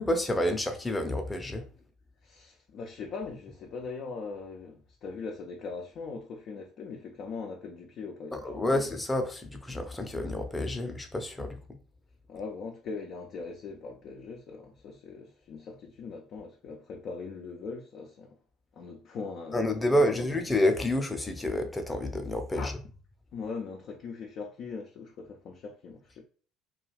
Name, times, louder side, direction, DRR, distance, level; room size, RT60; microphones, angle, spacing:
voice 1, 0.0-1.6 8.3-11.6 19.5-22.7, left 1 dB, 15° left, 0.6 m, -29 dB
voice 2, 2.2-8.9 12.3-18.4 18.8-20.3 22.5-22.8 23.3-26.2, left 4 dB, 55° left, 0.4 m, -40 dB
2.3 x 2.3 x 3.1 m
hypercardioid pair, 60°, 0 cm